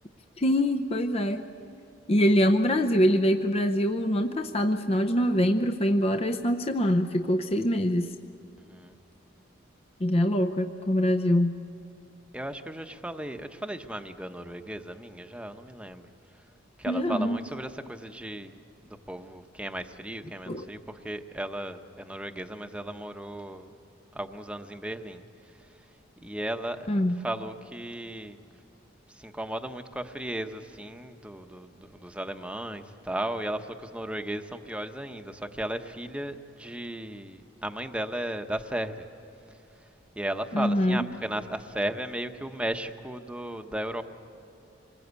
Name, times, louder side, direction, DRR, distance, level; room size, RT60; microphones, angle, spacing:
voice 1, 0.4-1.4 2.1-8.1 10.0-11.5 16.8-17.4 20.5-20.6 26.9-27.2 40.5-41.0, equal, 30° left, 6 dB, 0.7 m, -24 dB
voice 2, 12.3-16.1 16.8-18.6 18.8-23.8 24.1-25.2 26.2-26.9 27.2-28.4 29.1-39.1 40.1-44.0, right 1 dB, 5° right, 7 dB, 0.9 m, -35 dB
26.5 x 21.0 x 8.2 m, 2.7 s
head